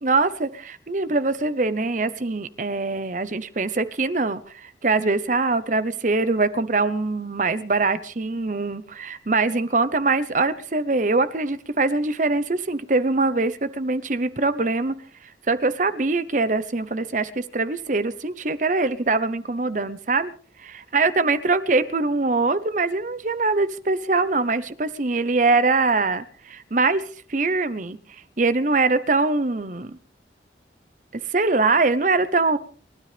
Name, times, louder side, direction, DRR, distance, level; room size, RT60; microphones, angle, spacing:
voice 1, 0.0-14.9 15.5-20.3 20.6-27.0 27.3-28.0 28.4-30.0 31.1-32.6, right 3 dB, 45° right, 0.8 m, -23 dB
29.0 x 13.0 x 3.4 m
head